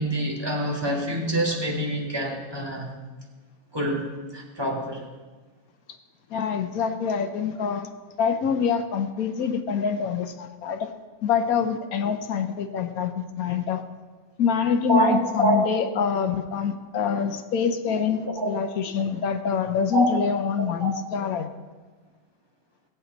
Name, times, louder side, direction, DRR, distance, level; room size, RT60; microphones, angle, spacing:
voice 1, 0.0-2.9 3.7-5.0 14.9-15.6 17.9-18.5 19.9-20.1 20.8-20.9 21.2-21.3, right 1 dB, 15° right, -2 dB, 1.5 m, -26 dB
voice 2, 6.3-7.9 8.2-10.9 11.2-13.8 14.4-21.5, left 6 dB, 70° left, 7 dB, 0.8 m, -25 dB
18.0 x 8.0 x 3.9 m, 1.3 s
omnidirectional pair, 2.4 m